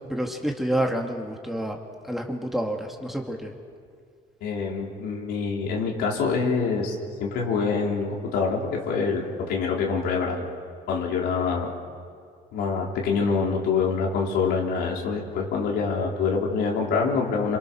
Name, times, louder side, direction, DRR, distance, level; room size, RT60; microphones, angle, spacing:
voice 1, 0.0-1.8 2.0-3.5, right 1 dB, ahead, 1 dB, 2.7 m, -28 dB
voice 2, 4.4-10.5 10.9-11.7 12.5-17.6, left 5 dB, 80° left, -1 dB, 4.6 m, -25 dB
28.0 x 27.0 x 6.6 m, 2.2 s
cardioid pair, 110°, 17 cm